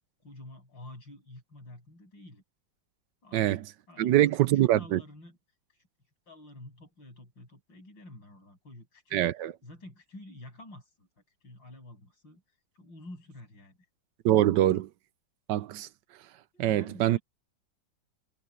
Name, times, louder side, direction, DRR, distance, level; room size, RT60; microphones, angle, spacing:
voice 1, 0.2-2.4 3.2-4.2 4.5-5.4 5.7-5.9 6.3-9.3 9.6-11.1 11.4-12.4 12.7-13.8 16.5-17.2, left 1 dB, 80° left, 8.9 m, -49 dB
voice 2, 3.3-3.7 4.0-5.0 9.1-9.5 14.2-14.9 15.5-15.9 16.6-17.2, right 13 dB, 75° right, 1.2 m, -24 dB
omnidirectional pair, 2.0 m